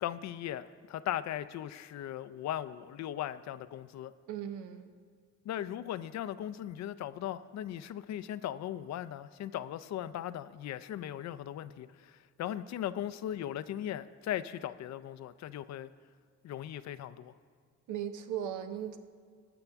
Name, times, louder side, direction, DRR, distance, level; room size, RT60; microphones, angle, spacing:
voice 1, 0.0-4.1 5.4-15.9 16.4-17.3, left 11 dB, 65° left, 15 dB, 0.5 m, -38 dB
voice 2, 4.3-4.9 17.9-19.0, right 9 dB, 80° right, 7 dB, 0.9 m, -37 dB
19.5 x 6.9 x 3.5 m, 2.1 s
cardioid pair, 90°, 30 cm